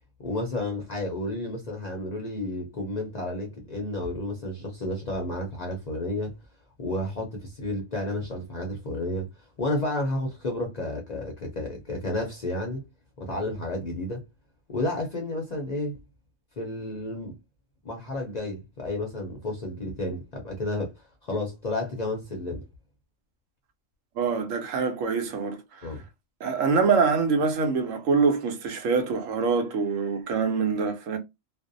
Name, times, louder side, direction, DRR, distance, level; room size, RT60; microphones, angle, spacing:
voice 1, 0.2-6.3 6.8-9.3 9.6-12.8 13.2-14.2 14.7-16.0 16.6-17.4 17.8-20.9 21.2-22.6 25.8-26.0, left 1 dB, 50° left, 0.5 m, -31 dB
voice 2, 24.2-25.9 26.4-31.2, right 5 dB, 90° right, 1.0 m, -25 dB
2.5 x 2.0 x 2.5 m
omnidirectional pair, 1.3 m